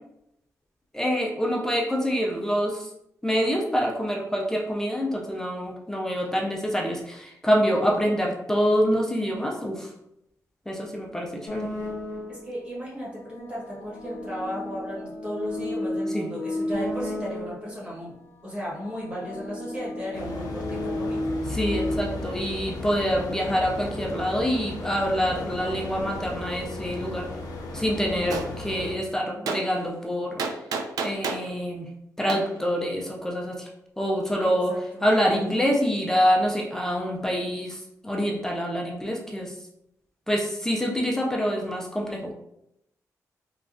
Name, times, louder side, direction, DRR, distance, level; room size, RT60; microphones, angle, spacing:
voice 1, 0.9-2.9 3.2-9.9 10.7-11.7 16.1-16.3 21.5-27.3 27.7-30.5 31.0-31.9 32.2-33.7 34.0-34.7 35.0-39.5 40.3-42.3, equal, 10° left, -1 dB, 0.4 m, -26 dB
sound 1, 11.5-12.5 13.3-17.8 18.6-22.0, left 1 dB, 45° left, 0.7 m, -33 dB
voice 2, 12.3-18.1 18.4-21.2 27.9-28.4 34.4-35.1, equal, 20° right, -6 dB, 1.2 m, -35 dB
sound 2, 20.1-28.9, left 2 dB, 75° left, 0.4 m, -35 dB
Gunshot gunfire, 28.3-28.5 29.5-29.6 30.4-31.5 32.3-32.4, right 4 dB, 90° right, 0.3 m, -29 dB
3.3 x 2.2 x 2.5 m, 0.79 s
wide cardioid pair, 145°, 6 cm